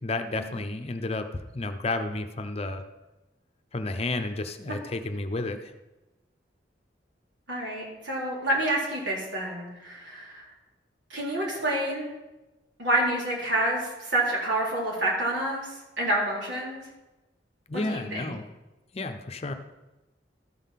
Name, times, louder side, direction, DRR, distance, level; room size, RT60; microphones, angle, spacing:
voice 1, 0.0-2.8 3.7-5.7 17.7-18.4 18.9-19.5, left 2 dB, 35° left, 8 dB, 0.7 m, -31 dB
voice 2, 7.5-10.5 11.1-12.1 12.8-15.6 16.0-16.8 17.7-18.3, right 1 dB, 85° right, -3 dB, 3.6 m, -28 dB
13.0 x 5.6 x 5.8 m, 1.1 s
head